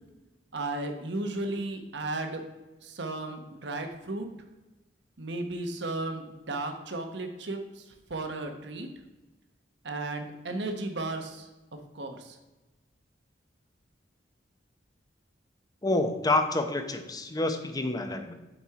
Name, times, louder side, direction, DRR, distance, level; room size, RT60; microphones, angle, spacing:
voice 1, 0.5-2.4 2.8-4.3 5.2-7.8 8.1-8.9 9.8-11.5 11.9-12.4, right 2 dB, 65° right, 6 dB, 1.0 m, -34 dB
voice 2, 15.8-18.3, left 2 dB, 20° left, 7 dB, 0.6 m, -28 dB
8.2 x 4.3 x 4.8 m, 1.1 s
head